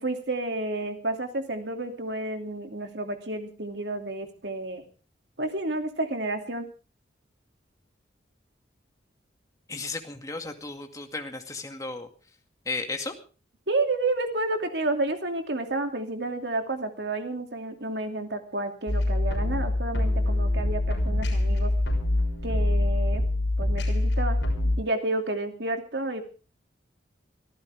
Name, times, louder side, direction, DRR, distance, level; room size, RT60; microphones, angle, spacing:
voice 1, 0.0-4.8 5.4-6.7 13.7-21.7 22.4-23.2 23.6-26.2, right 2 dB, 60° right, 5 dB, 2.7 m, -30 dB
voice 2, 9.7-12.1 12.7-13.1, left 3 dB, 20° left, 4 dB, 2.2 m, -34 dB
sound 1, 18.9-24.8, left 1 dB, 65° left, 6.4 m, -25 dB
24.5 x 14.5 x 3.6 m, 0.36 s
head